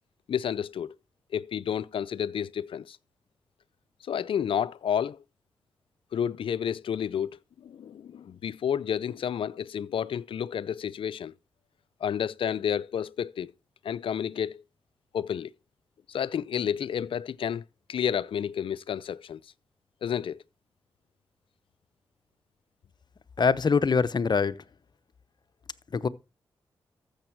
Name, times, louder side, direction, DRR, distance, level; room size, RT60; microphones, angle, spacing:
voice 1, 0.3-0.9 1.3-3.0 4.0-5.2 6.1-11.3 12.0-13.5 13.8-14.6 15.1-15.5 16.1-17.6 17.9-19.4 20.0-20.4, left 8 dB, 70° left, 0.5 m, -30 dB
voice 2, 23.4-24.5 25.9-26.1, left 5 dB, 50° left, 0.9 m, -23 dB
13.5 x 7.3 x 4.6 m
supercardioid pair, 45°, 9 cm